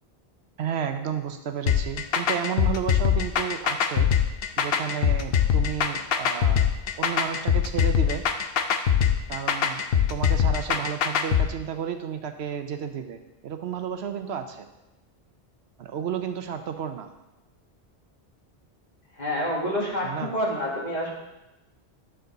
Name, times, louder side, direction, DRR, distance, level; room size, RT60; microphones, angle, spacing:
voice 1, 0.6-4.1 4.6-6.6 7.0-8.2 9.3-9.8 10.1-14.7 15.8-17.1 20.0-20.3, right 8 dB, 75° right, 7 dB, 0.9 m, -32 dB
sound 1, 1.7-11.5, left 8 dB, 65° left, 0.8 m, -23 dB
voice 2, 19.2-21.1, equal, 40° left, -3 dB, 1.8 m, -28 dB
9.1 x 6.6 x 4.0 m, 0.97 s
omnidirectional pair, 1.1 m